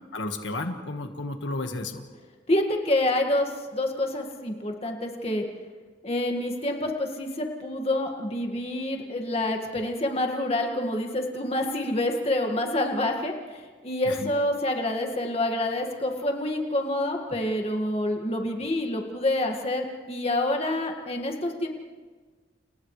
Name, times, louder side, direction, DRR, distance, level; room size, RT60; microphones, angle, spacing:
voice 1, 0.1-2.1 14.1-14.3, left 2 dB, 90° left, 5 dB, 1.7 m, -32 dB
voice 2, 2.5-5.4 6.0-21.7, left 1 dB, 35° left, 3 dB, 2.0 m, -27 dB
30.0 x 29.5 x 3.3 m, 1.5 s
head